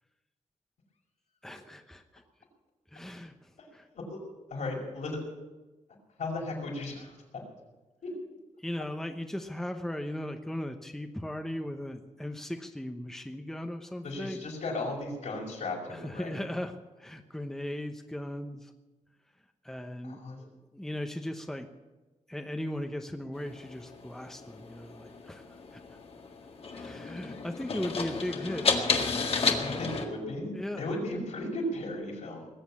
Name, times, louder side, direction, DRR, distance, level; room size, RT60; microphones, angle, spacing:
voice 1, 1.4-2.2 2.9-3.8 8.6-14.4 15.9-16.7 17.0-18.7 19.6-21.7 22.3-25.4 25.7-25.8 26.7-28.9 30.6-31.0, left 1 dB, 5° left, 5 dB, 1.0 m, -37 dB
voice 2, 4.5-5.2 6.2-7.4 8.0-8.1 14.0-16.4 20.0-20.4 29.6-32.5, left 2 dB, 70° left, -1 dB, 5.5 m, -36 dB
sound 1, 23.3-30.1, left 4 dB, 50° left, 1.9 m, -32 dB
20.0 x 7.9 x 8.7 m, 1.1 s
wide cardioid pair, 115°, 13 cm